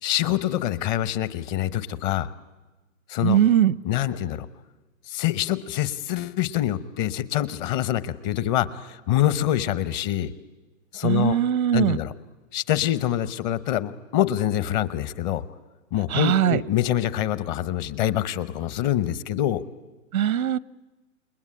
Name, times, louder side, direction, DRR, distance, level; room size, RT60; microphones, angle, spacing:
voice 1, 0.0-2.3 3.1-3.4 3.8-4.5 5.1-10.3 10.9-11.4 11.7-12.1 12.5-15.4 15.9-19.6, left 12 dB, 35° left, 16 dB, 0.9 m, -25 dB
voice 2, 3.2-3.7 11.0-12.0 16.1-16.6 20.1-20.6, right 10 dB, 85° right, 21 dB, 0.8 m, -20 dB
28.5 x 20.5 x 9.9 m, 1.2 s
hypercardioid pair, 135°, 41 cm